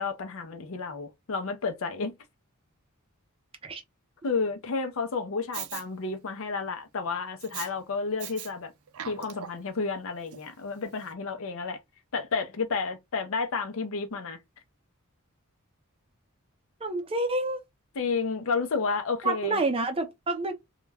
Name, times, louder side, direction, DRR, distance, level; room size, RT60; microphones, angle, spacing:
voice 1, 0.0-2.1 4.2-8.7 9.1-11.8 12.1-14.4 18.0-19.6, left 4 dB, 65° left, 0.5 m, -31 dB
Respiratory sounds, 5.5-5.8 7.4-7.7 8.2-8.5 8.9-9.7 10.3-10.4, right 10 dB, 75° right, 0.4 m, -39 dB
voice 2, 16.8-17.6 19.2-20.5, right 2 dB, 25° right, 0.6 m, -28 dB
2.3 x 2.1 x 3.3 m
head